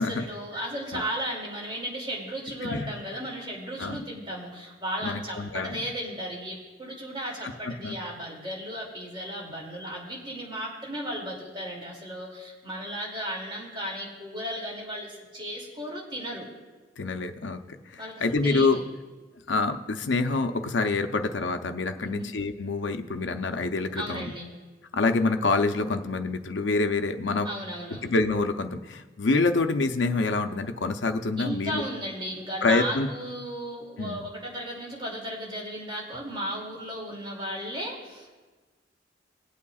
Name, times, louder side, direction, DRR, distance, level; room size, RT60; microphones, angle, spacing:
voice 1, 0.0-16.5 18.0-18.8 21.9-22.3 24.0-24.5 27.4-28.0 31.4-38.4, equal, 30° right, -3 dB, 2.5 m, -35 dB
voice 2, 2.6-2.9 3.8-4.0 5.0-5.8 7.7-7.9 17.0-18.8 19.5-24.3 24.9-27.5 27.9-31.8 32.6-33.1 34.0-34.3, left 3 dB, 85° left, 7 dB, 0.7 m, -26 dB
20.0 x 8.4 x 2.4 m, 1.3 s
head